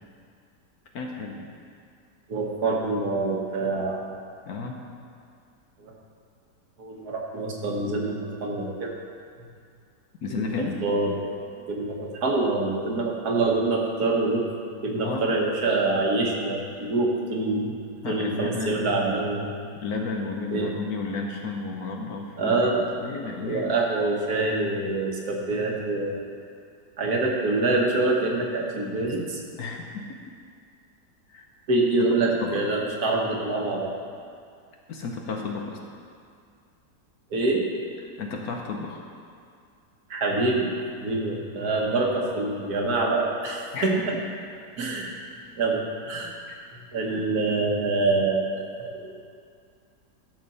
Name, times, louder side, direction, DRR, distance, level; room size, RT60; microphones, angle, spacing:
voice 1, 0.9-1.5 4.5-4.8 10.2-10.8 15.0-15.3 18.0-19.0 19.8-22.6 23.0-23.7 29.5-30.2 31.3-31.4 32.2-32.6 34.9-35.8 38.2-39.0 43.7-44.1 46.5-46.7 47.2-47.3, left 4 dB, 65° left, 1 dB, 1.3 m, -32 dB
voice 2, 2.3-4.1 5.8-5.9 6.8-8.9 10.8-11.3 11.7-14.5 14.8-19.5 20.5-20.7 22.4-22.9 23.4-26.2 27.0-29.4 31.7-33.9 37.3-37.7 40.1-40.7 41.0-44.2 44.8-45.1 45.6-46.3 46.9-49.1, right 2 dB, 60° right, -1 dB, 1.6 m, -25 dB
12.0 x 7.0 x 4.1 m, 2.3 s
omnidirectional pair, 1.9 m